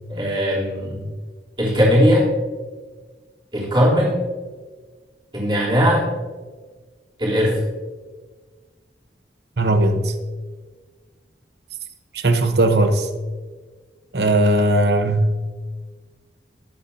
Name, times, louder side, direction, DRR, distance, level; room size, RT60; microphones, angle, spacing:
voice 1, 0.1-1.1 1.6-2.2 3.5-4.2 5.3-6.1 7.2-7.6, equal, 25° right, -6 dB, 3.6 m, -18 dB
voice 2, 9.6-10.1 12.1-13.1 14.1-15.4, right 1 dB, 65° right, 7 dB, 1.0 m, -18 dB
20.0 x 8.6 x 2.8 m, 1.4 s
head